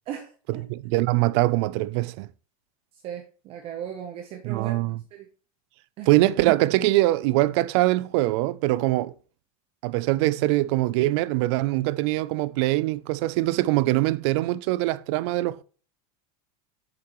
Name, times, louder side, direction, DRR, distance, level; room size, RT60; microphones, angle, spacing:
voice 1, 0.1-0.6 3.0-4.7 5.1-5.3 6.0-6.1, right 9 dB, 30° right, 0.8 m, -37 dB
voice 2, 0.7-2.3 4.4-5.0 6.1-9.1 9.8-15.6, right 18 dB, 50° right, 0.4 m, -23 dB
7.8 x 6.8 x 3.0 m
supercardioid pair, 165°, 18 cm